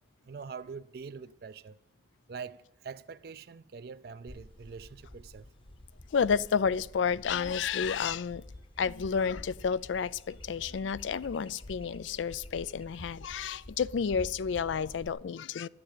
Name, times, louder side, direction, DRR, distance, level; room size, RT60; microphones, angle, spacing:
voice 1, 0.3-1.8 2.3-5.5, right 5 dB, 55° right, 0.4 m, -44 dB
sound 1, 4.3-15.1, left 1 dB, 30° left, 0.9 m, -49 dB
voice 2, 6.1-8.4 8.8-15.7, left 6 dB, 90° left, 0.4 m, -30 dB
13.0 x 7.0 x 9.0 m
head